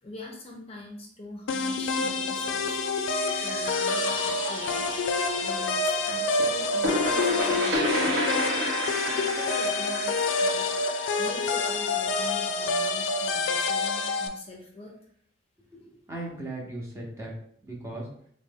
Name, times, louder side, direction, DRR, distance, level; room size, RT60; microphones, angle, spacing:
voice 1, 0.0-2.8 3.4-4.9 5.4-8.2 9.0-10.7 11.2-14.9, left 1 dB, 30° left, 0 dB, 0.5 m, -43 dB
sound 1, 1.5-14.3, left 3 dB, 85° left, 0.4 m, -27 dB
sound 2, 2.7-9.1 9.5-9.6, right 6 dB, 85° right, 0.4 m, -43 dB
sound 3, 6.4-12.0, equal, 60° right, 0.9 m, -30 dB
voice 2, 15.7-17.3 17.6-18.1, right 2 dB, 15° right, -2 dB, 0.8 m, -37 dB
3.9 x 2.1 x 3.6 m, 0.64 s
head